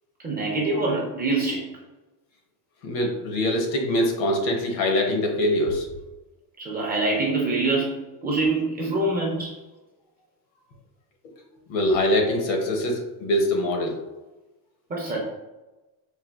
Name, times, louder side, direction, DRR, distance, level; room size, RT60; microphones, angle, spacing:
voice 1, 0.2-1.7 6.6-7.9 8.2-9.5 14.9-15.2, right 2 dB, 20° right, -2 dB, 0.4 m, -25 dB
voice 2, 2.8-5.9 11.7-14.0, left 1 dB, 70° left, 3 dB, 0.8 m, -23 dB
4.3 x 2.2 x 2.2 m, 1.1 s
cardioid pair, 135°, 47 cm